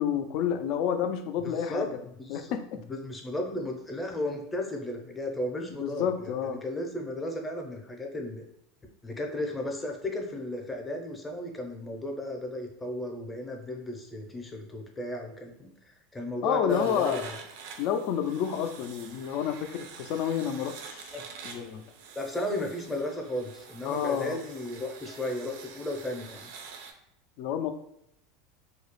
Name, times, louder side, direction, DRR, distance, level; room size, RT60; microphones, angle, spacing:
voice 1, 0.0-1.9 2.3-2.8 5.8-6.6 16.4-17.2 17.8-21.2 21.4-21.8 23.8-24.4 27.4-27.7, left 8 dB, 60° left, 8 dB, 0.3 m, -29 dB
voice 2, 1.4-2.5 2.8-8.4 9.0-17.3 21.1-21.2 22.2-26.5, left 1 dB, 15° left, 2 dB, 0.6 m, -34 dB
sound 1, 16.7-26.9, right 6 dB, 70° right, 0.4 m, -47 dB
2.3 x 2.0 x 3.0 m, 0.76 s
hypercardioid pair, 100°, 0 cm